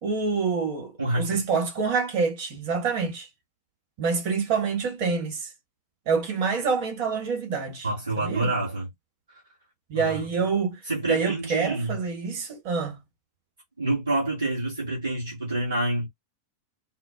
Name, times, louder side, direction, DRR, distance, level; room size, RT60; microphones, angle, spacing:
voice 1, 0.0-3.3 4.0-5.5 6.1-7.9 8.2-8.5 9.9-10.8 11.1-13.0, right 5 dB, 45° right, 1.2 m, -27 dB
voice 2, 1.0-1.4 7.8-8.9 9.9-10.2 10.8-12.0 13.8-16.1, right 2 dB, 75° right, 1.5 m, -27 dB
4.2 x 2.0 x 2.5 m
figure-of-eight pair, 90°, 0 cm